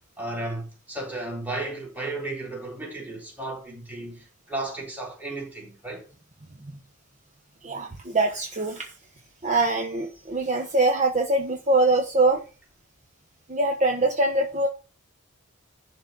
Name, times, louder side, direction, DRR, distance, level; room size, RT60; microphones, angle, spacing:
voice 1, 0.2-6.1, right 2 dB, 10° right, 3.9 m, -34 dB
voice 2, 7.6-8.9 9.4-12.4 13.5-14.7, right 2 dB, 35° right, 1.1 m, -23 dB
11.0 x 4.0 x 6.0 m
head